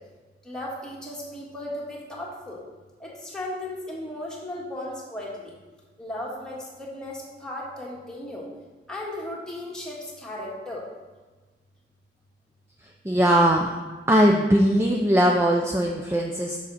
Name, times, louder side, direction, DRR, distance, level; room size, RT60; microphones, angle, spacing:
voice 1, 0.4-2.6 3.0-5.5 6.0-8.5 8.9-10.8, left 1 dB, 5° left, -5 dB, 1.6 m, -36 dB
voice 2, 13.1-13.7 14.1-16.6, equal, 15° right, 1 dB, 0.4 m, -20 dB
6.9 x 6.2 x 4.1 m, 1.3 s
head